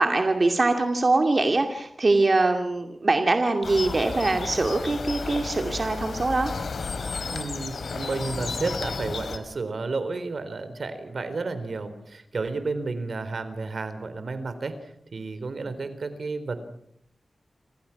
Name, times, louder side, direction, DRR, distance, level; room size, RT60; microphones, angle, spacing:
voice 1, 0.0-6.5, right 2 dB, 40° right, 4 dB, 2.4 m, -23 dB
sound 1, 3.6-9.4, left 4 dB, 90° left, 3.0 m, -33 dB
voice 2, 7.3-14.8 15.1-16.6, right 3 dB, 65° right, 10 dB, 4.0 m, -32 dB
29.5 x 26.5 x 6.0 m, 0.72 s
wide cardioid pair, 115°, 0 cm